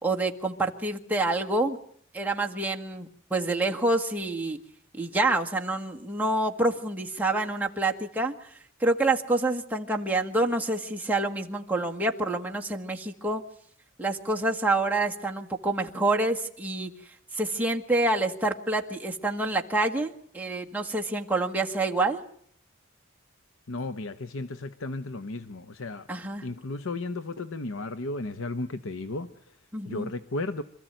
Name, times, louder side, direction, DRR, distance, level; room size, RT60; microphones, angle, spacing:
voice 1, 0.0-1.8 2.1-4.6 4.9-8.3 8.8-13.4 14.0-16.9 17.3-22.2 26.1-26.4 29.7-30.1, right 2 dB, 10° right, 1.8 m, -27 dB
voice 2, 23.7-26.1 26.4-29.6 29.9-30.6, left 2 dB, 80° left, 0.9 m, -34 dB
26.0 x 14.5 x 9.0 m
head